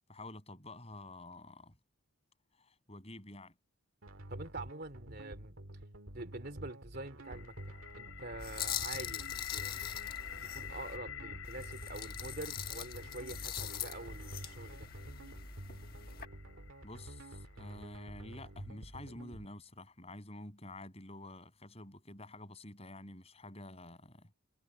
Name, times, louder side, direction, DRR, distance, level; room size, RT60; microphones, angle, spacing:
voice 1, 0.1-1.8 2.5-3.5 16.8-24.3, left 1 dB, 30° left, 6.8 m, -49 dB
sound 1, 4.0-19.5, right 1 dB, 70° right, 2.2 m, -49 dB
voice 2, 4.3-5.6 6.1-9.7 10.5-14.9, right 2 dB, 45° right, 3.3 m, -46 dB
sound 2, 7.2-19.1, left 8 dB, 70° left, 4.3 m, -48 dB
sound 3, 8.4-11.0 11.4-16.3, left 9 dB, 45° left, 1.4 m, -43 dB
head